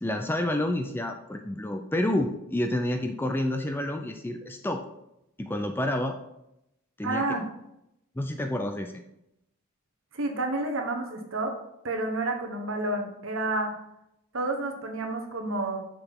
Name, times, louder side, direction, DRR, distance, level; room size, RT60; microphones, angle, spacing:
voice 1, 0.0-4.8 5.4-6.1 7.0-7.3 8.2-8.9, left 1 dB, 10° left, 6 dB, 0.4 m, -29 dB
voice 2, 7.0-7.4 10.1-11.6 11.8-13.7 14.3-15.8, right 2 dB, 65° right, 3 dB, 1.2 m, -30 dB
6.8 x 6.0 x 3.7 m, 0.85 s
head